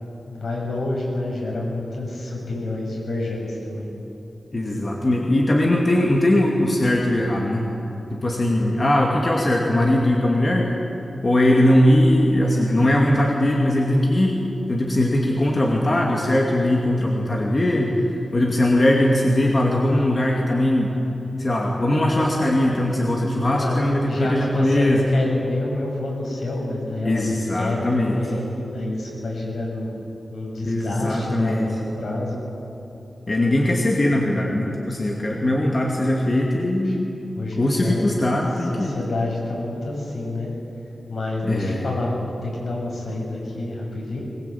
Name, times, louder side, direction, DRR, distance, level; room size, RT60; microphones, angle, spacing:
voice 1, 0.3-3.9 8.4-8.6 23.5-29.9 30.3-32.4 35.3-35.5 36.8-37.0 37.4-38.0 38.7-40.5 41.1-44.2, left 2 dB, 75° left, -2 dB, 7.4 m, -28 dB
voice 2, 4.5-7.7 8.1-10.7 11.2-14.4 14.7-18.0 18.3-20.9 21.4-25.0 27.0-28.2 30.6-31.7 33.3-37.1 37.6-39.0 41.5-41.9, left 1 dB, 35° left, -1 dB, 2.5 m, -20 dB
22.5 x 21.5 x 8.6 m, 2.9 s
wide cardioid pair, 130°, 0 cm